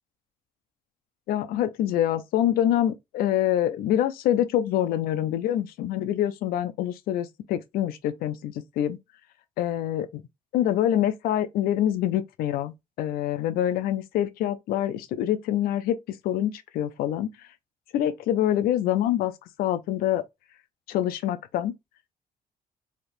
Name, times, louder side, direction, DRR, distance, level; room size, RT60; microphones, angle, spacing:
voice 1, 1.3-9.0 9.6-10.1 10.5-16.0 16.2-17.3 17.9-19.3 19.6-20.2 20.9-21.7, left 11 dB, 90° left, 0.5 m, -25 dB
3.3 x 2.8 x 2.5 m
cardioid pair, 145°, 15 cm